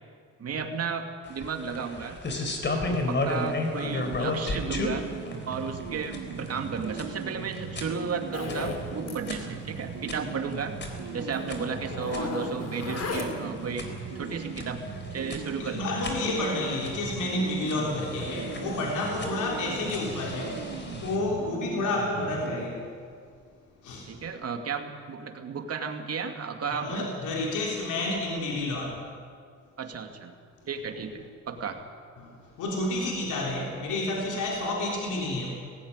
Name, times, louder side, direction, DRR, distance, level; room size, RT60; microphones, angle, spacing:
voice 1, 0.4-2.2 2.7-5.1 5.5-10.8 11.1-13.9 14.2-14.8 15.1-15.8 24.1-27.0 29.8-30.3 30.7-31.8, right 5 dB, 55° right, 5 dB, 2.5 m, -33 dB
sound 1, 1.3-21.2, left 2 dB, 35° left, 3.9 m, -36 dB
voice 2, 2.7-3.0 15.6-20.7 21.0-22.9 23.8-24.2 26.7-28.9 32.2-35.6, left 2 dB, 80° left, -1 dB, 3.7 m, -30 dB
sound 2, 3.8-22.7, right 6 dB, 90° right, 2.6 m, -39 dB
Zipper (clothing), 8.3-8.8 9.1-9.3 9.6-9.7 10.0-10.1 10.9-11.0 11.3-13.6, left 4 dB, 55° left, 3.4 m, -35 dB
18.5 x 16.5 x 9.8 m, 2.1 s
cardioid pair, 90°, 30 cm